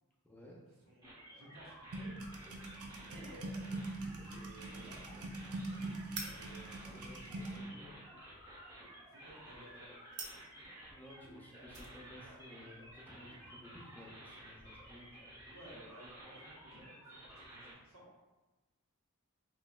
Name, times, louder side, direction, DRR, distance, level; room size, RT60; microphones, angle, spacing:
voice 1, 0.2-0.6 6.9-8.0 10.9-15.5, left 1 dB, 10° left, -2 dB, 0.5 m, -55 dB
voice 2, 0.8-2.1 2.8-3.6 3.9-5.1 6.2-6.7 9.1-9.9 15.5-18.1, right 1 dB, 70° right, -5 dB, 1.1 m, -56 dB
sound 1, 1.0-17.7, right 1 dB, 20° right, 1.1 m, -54 dB
sound 2, 1.9-7.6, right 2 dB, 90° right, 0.6 m, -43 dB
sound 3, 2.1-15.2, right 3 dB, 55° right, 0.7 m, -55 dB
4.8 x 3.0 x 2.4 m, 1.2 s
head